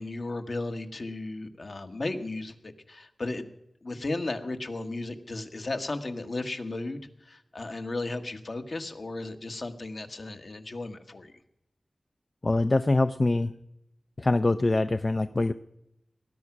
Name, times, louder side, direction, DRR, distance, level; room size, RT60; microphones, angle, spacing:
voice 1, 0.0-3.5 3.8-11.4, left 2 dB, 60° left, 6 dB, 1.4 m, -35 dB
voice 2, 12.4-13.5 14.2-15.5, left 2 dB, 40° left, 11 dB, 0.5 m, -24 dB
19.5 x 11.0 x 6.0 m, 0.83 s
wide cardioid pair, 65°, 0 cm